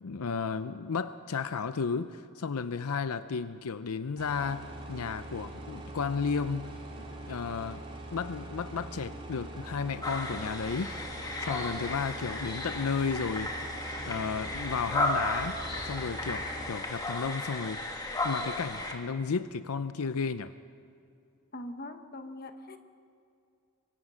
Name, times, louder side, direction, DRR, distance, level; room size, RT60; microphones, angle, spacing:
voice 1, 0.0-6.7 7.3-7.8 8.1-10.9 11.4-13.7 14.0-15.6 15.8-17.8 18.2-20.5, left 5 dB, 85° left, 12 dB, 0.6 m, -33 dB
sound 1, 4.2-16.7, right 1 dB, 25° right, 2.9 m, -43 dB
sound 2, 10.0-18.9, left 2 dB, 15° left, 2.0 m, -34 dB
voice 2, 21.5-22.8, left 1 dB, 40° left, 7 dB, 1.3 m, -42 dB
24.0 x 19.5 x 6.3 m, 2.5 s
head